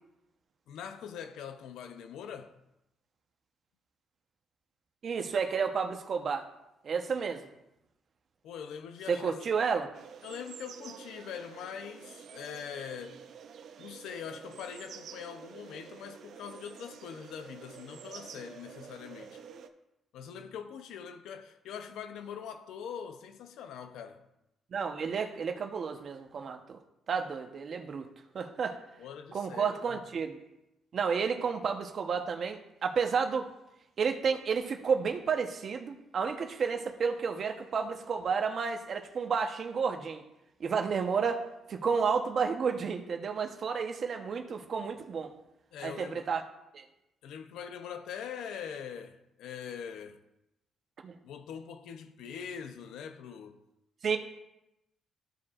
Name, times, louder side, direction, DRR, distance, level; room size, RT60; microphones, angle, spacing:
voice 1, 0.7-2.6 8.4-9.4 10.2-13.2 13.8-19.4 20.1-24.2 29.0-30.0 45.7-46.3 47.2-50.2 51.2-53.6, left 7 dB, 85° left, 0.7 m, -43 dB
voice 2, 5.0-6.5 6.8-7.4 9.1-9.9 24.7-26.8 27.1-28.1 28.3-28.8 29.3-30.4 30.9-33.5 34.0-40.2 40.6-45.3 45.8-46.4 46.7-46.8 51.0-51.2 54.0-54.2, right 6 dB, 55° right, 0.9 m, -31 dB
sound 1, 9.9-19.7, right 7 dB, 70° right, 0.6 m, -49 dB
13.5 x 4.8 x 2.5 m
cardioid pair, 90°, 0 cm